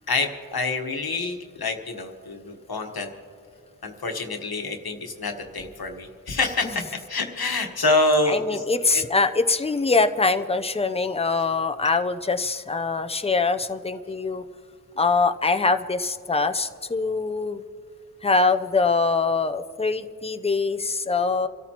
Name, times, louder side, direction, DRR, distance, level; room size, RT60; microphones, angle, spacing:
voice 1, 0.1-3.1 3.8-8.6 8.9-9.0, left 2 dB, 85° left, 4 dB, 1.3 m, -26 dB
voice 2, 8.3-14.4 15.0-17.6 18.2-21.5, left 4 dB, 15° left, 9 dB, 0.5 m, -23 dB
27.5 x 13.5 x 2.9 m, 2.2 s
wide cardioid pair, 60°, 36 cm